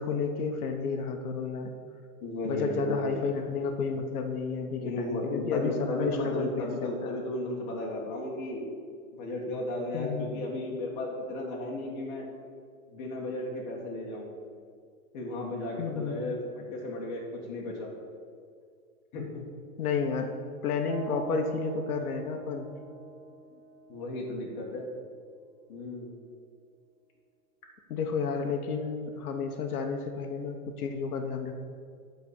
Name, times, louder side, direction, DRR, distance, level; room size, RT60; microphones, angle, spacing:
voice 1, 0.0-1.7 2.4-7.2 9.9-10.3 15.8-16.2 19.8-20.3 20.6-22.7 27.9-31.5, left 5 dB, 90° left, 4 dB, 1.1 m, -31 dB
voice 2, 2.2-3.2 4.8-8.7 9.2-12.3 12.9-14.3 15.1-17.9 19.1-19.4 23.9-24.9 25.7-26.1, left 1 dB, 30° left, -2 dB, 1.9 m, -34 dB
sound 1, 20.8-24.8, right 5 dB, 40° right, 1.1 m, -43 dB
9.5 x 4.4 x 7.0 m, 2.1 s
hypercardioid pair, 165°, 43 cm